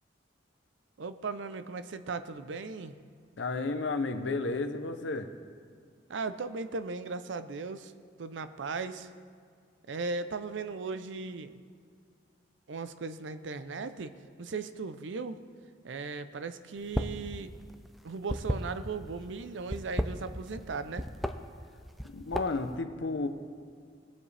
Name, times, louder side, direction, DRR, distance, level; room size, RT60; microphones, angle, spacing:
voice 1, 1.0-3.0 6.1-7.9 8.2-9.1 9.9-11.6 12.7-14.1 14.4-15.4 15.8-17.5 18.0-21.0, right 4 dB, 75° right, 11 dB, 0.5 m, -37 dB
voice 2, 3.4-5.3 22.1-23.3, left 3 dB, 70° left, 9 dB, 0.7 m, -32 dB
sound 1, 16.8-17.3 17.5-19.1 19.6-20.7 21.0-21.3 21.9-22.7, equal, ahead, 0.4 m, -33 dB
19.0 x 7.2 x 3.3 m, 2.1 s
head